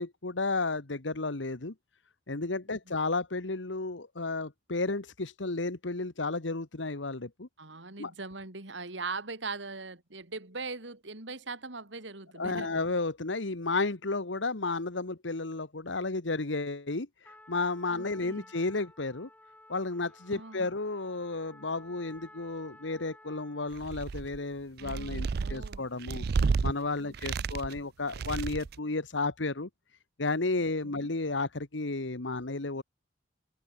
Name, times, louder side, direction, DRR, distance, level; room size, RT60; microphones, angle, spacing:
voice 1, 0.0-1.7 2.3-7.5 8.0-8.1 12.3-17.1 17.5-19.3 19.7-26.2 26.6-29.7 30.2-32.8, left 3 dB, 80° left, 1.5 m, -32 dB
voice 2, 7.6-12.9 17.9-18.5 20.3-20.7 24.8-25.8 27.0-27.5 30.8-31.1, right 3 dB, 75° right, 3.2 m, -41 dB
Trumpet, 17.2-23.8, left 1 dB, 10° left, 5.3 m, -55 dB
sound 1, 23.7-24.4 24.8-26.7 27.1-27.8 28.1-28.8, right 4 dB, 55° right, 0.4 m, -31 dB
head